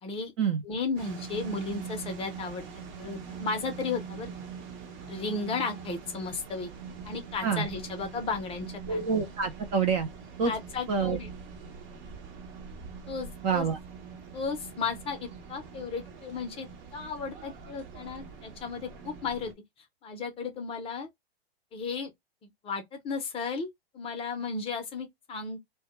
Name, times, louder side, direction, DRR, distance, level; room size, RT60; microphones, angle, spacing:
voice 1, 0.0-0.3 0.6-2.7 3.0-4.3 5.0-6.7 7.0-9.0 10.4-11.3 13.1-13.7 14.3-19.5 20.0-21.1 21.7-22.1 22.4-23.7 23.9-25.6, left 4 dB, 20° left, 0.5 m, -34 dB
sound 1, 1.0-19.5, right 6 dB, 50° right, 0.9 m, -43 dB
voice 2, 8.9-10.1 10.4-10.5 10.9-11.2 13.4-13.8, right 6 dB, 30° right, 0.4 m, -27 dB
2.2 x 2.1 x 2.9 m
hypercardioid pair, 120°, 31 cm